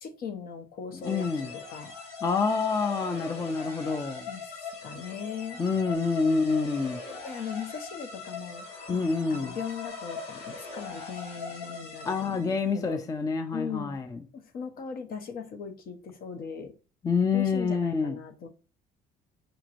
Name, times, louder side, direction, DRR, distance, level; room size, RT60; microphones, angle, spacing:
voice 1, 0.0-1.3 1.5-1.9 4.3-4.4 4.8-5.6 7.2-9.0 9.3-13.0 13.5-14.0 14.3-16.7 17.3-18.5, left 6 dB, 60° left, 0.8 m, -39 dB
voice 2, 0.9-1.5 2.2-4.2 5.6-7.0 8.9-9.6 12.0-14.2 17.0-18.2, left 4 dB, 20° left, 0.4 m, -27 dB
sound 1, 1.0-12.7, left 4 dB, 85° left, 1.5 m, -41 dB
sound 2, 8.5-11.2, left 4 dB, 45° left, 1.3 m, -50 dB
5.1 x 2.9 x 2.5 m
cardioid pair, 110°, 17 cm